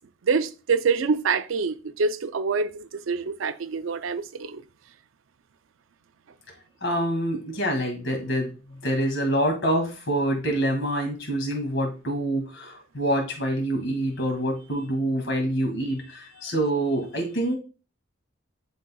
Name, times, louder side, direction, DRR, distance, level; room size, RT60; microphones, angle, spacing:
voice 1, 0.3-4.6, right 5 dB, 85° right, 0.5 m, -26 dB
voice 2, 6.8-17.6, right 1 dB, 65° left, 2.2 m, -26 dB
11.0 x 3.9 x 2.3 m
head